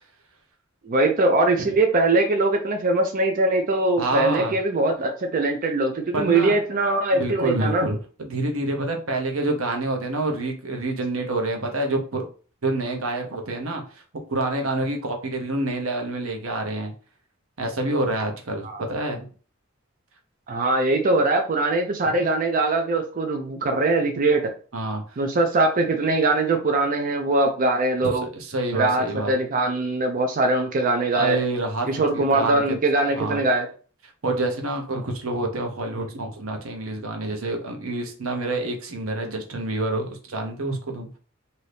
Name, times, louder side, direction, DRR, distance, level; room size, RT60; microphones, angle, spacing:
voice 1, 0.9-7.9 18.6-18.8 20.5-24.4 25.2-28.3 28.7-31.4 31.9-33.7, right 2 dB, 40° right, 4 dB, 0.4 m, -22 dB
voice 2, 4.0-4.6 6.1-6.6 7.1-12.2 12.6-14.0 14.3-16.9 17.6-19.3 24.7-25.2 28.2-29.3 31.2-31.9 32.1-32.8 33.1-33.4 34.2-41.2, right 2 dB, 85° right, 3 dB, 0.8 m, -27 dB
2.7 x 2.7 x 3.2 m, 0.39 s
head